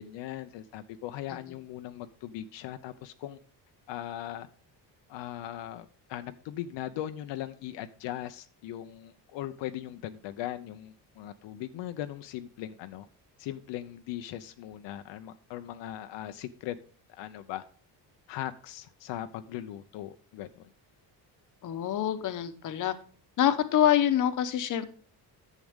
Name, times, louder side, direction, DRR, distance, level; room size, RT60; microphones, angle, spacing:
voice 1, 0.0-3.4 3.9-4.5 5.1-13.1 13.4-16.8 17.1-17.6 18.3-20.7, left 12 dB, 85° left, 0.8 m, -39 dB
voice 2, 21.6-22.9 23.4-24.9, left 10 dB, 45° left, 1.0 m, -26 dB
11.0 x 7.6 x 3.6 m
cardioid pair, 170°, 42 cm